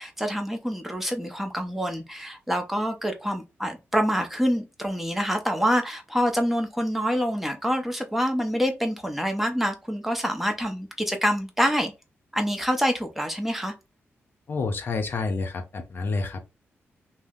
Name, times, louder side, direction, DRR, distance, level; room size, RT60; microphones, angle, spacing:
voice 1, 0.0-11.9 12.3-13.7, equal, 5° right, 0.6 m, -26 dB
voice 2, 14.5-16.4, left 3 dB, 55° left, 0.5 m, -29 dB
2.7 x 2.0 x 3.5 m
wide cardioid pair, 110°, 5 cm